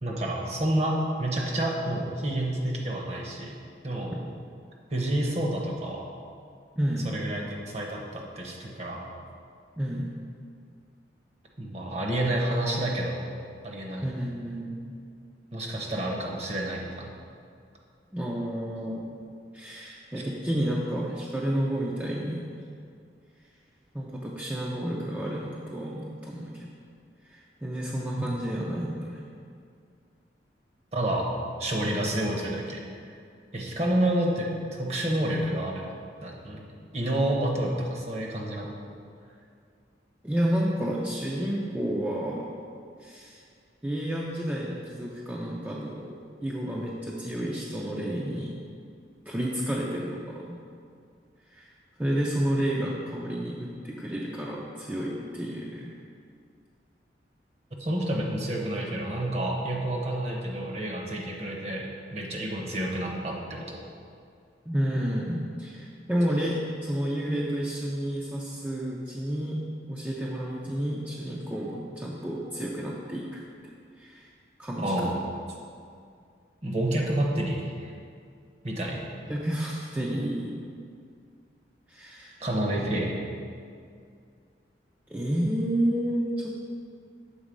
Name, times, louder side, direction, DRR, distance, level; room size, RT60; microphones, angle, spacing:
voice 1, 0.0-3.6 3.8-4.1 4.9-6.1 7.0-9.0 11.6-13.2 13.6-14.1 15.5-17.1 28.2-28.3 30.9-31.3 31.6-32.8 33.1-33.2 33.5-35.9 36.2-36.6 36.9-38.7 57.8-63.8 74.8-75.1 76.6-77.9 78.6-79.1 82.4-83.2, right 1 dB, 35° right, -1 dB, 0.9 m, -29 dB
voice 2, 6.8-7.1 9.8-10.2 14.0-14.9 18.1-19.1 19.5-22.5 23.9-26.7 27.2-29.2 40.2-42.5 43.0-43.4 43.8-46.1 46.4-48.5 49.3-50.6 51.5-51.7 52.0-55.9 64.7-69.6 69.9-73.4 74.0-74.3 74.6-75.1 79.3-80.6 81.9-82.4 85.1-86.5, equal, 10° right, -4 dB, 0.5 m, -30 dB
7.3 x 3.9 x 5.2 m, 2.3 s
head